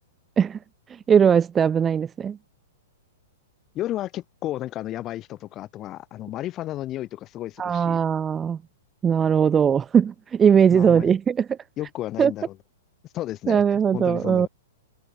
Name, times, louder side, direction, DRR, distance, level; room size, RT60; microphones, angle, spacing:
voice 1, 1.1-2.4 7.6-8.6 9.0-11.6 12.2-12.3 13.5-14.5, right 7 dB, 15° right, 0.9 m, -19 dB
voice 2, 3.7-8.0 10.7-11.2 11.8-12.6 13.1-14.5, left 14 dB, 30° left, 7.0 m, -33 dB
hypercardioid pair, 135°, 0 cm